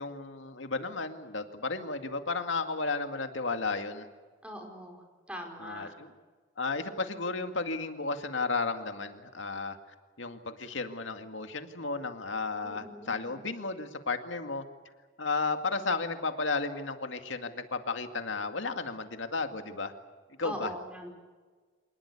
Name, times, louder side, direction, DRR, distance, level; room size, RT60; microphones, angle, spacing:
voice 1, 0.0-4.1 5.6-6.1 6.6-9.8 10.2-14.6 15.2-19.9 20.4-20.7, left 3 dB, 80° left, 7 dB, 2.1 m, -33 dB
voice 2, 4.4-5.9 12.6-13.4 20.4-21.1, equal, 5° right, 2 dB, 4.9 m, -42 dB
26.5 x 20.0 x 8.4 m, 1.4 s
head